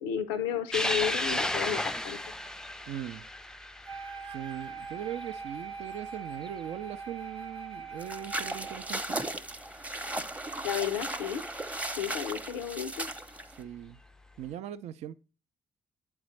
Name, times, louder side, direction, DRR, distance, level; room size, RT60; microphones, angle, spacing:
voice 1, 0.0-2.2 10.6-11.4 12.0-13.1, left 9 dB, 85° left, 0.4 m, -32 dB
sound 1, 0.7-7.4 7.8-7.9 9.2-9.3 11.4-11.5 12.9-13.2, left 1 dB, 5° left, 0.4 m, -34 dB
voice 2, 2.9-3.2 4.3-9.2 13.5-14.0 14.4-15.1, right 10 dB, 65° right, 0.4 m, -40 dB
Wind instrument woodwind instrument, 3.9-8.9, right 5 dB, 40° right, 0.8 m, -42 dB
sound 2, 8.0-13.6, right 1 dB, 10° right, 0.7 m, -36 dB
8.7 x 4.0 x 3.1 m
hypercardioid pair, 45°, 12 cm